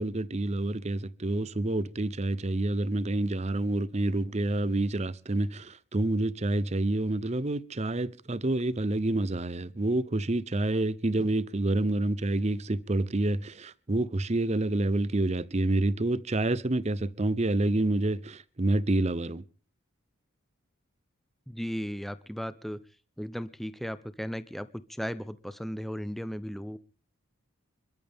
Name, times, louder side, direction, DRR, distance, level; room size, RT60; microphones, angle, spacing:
voice 1, 0.0-19.4, right 2 dB, 30° right, 0.7 m, -28 dB
voice 2, 21.5-22.8 23.2-26.8, equal, ahead, 0.7 m, -36 dB
27.5 x 13.0 x 3.6 m
head